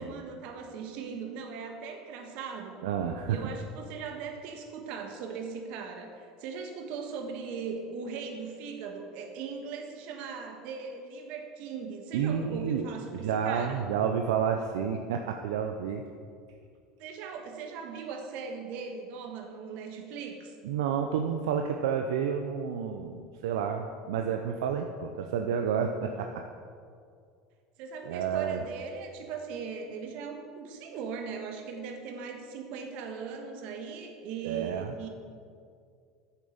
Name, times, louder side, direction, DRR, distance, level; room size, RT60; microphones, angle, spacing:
voice 1, 0.0-2.8 3.2-13.9 17.0-20.5 27.8-35.1, right 5 dB, 60° right, 4 dB, 1.4 m, -39 dB
voice 2, 2.8-3.4 12.1-16.0 20.6-26.4 28.1-28.6 34.4-35.0, right 7 dB, 80° right, 4 dB, 0.5 m, -30 dB
8.6 x 7.3 x 5.1 m, 2.3 s
supercardioid pair, 100°, 2 cm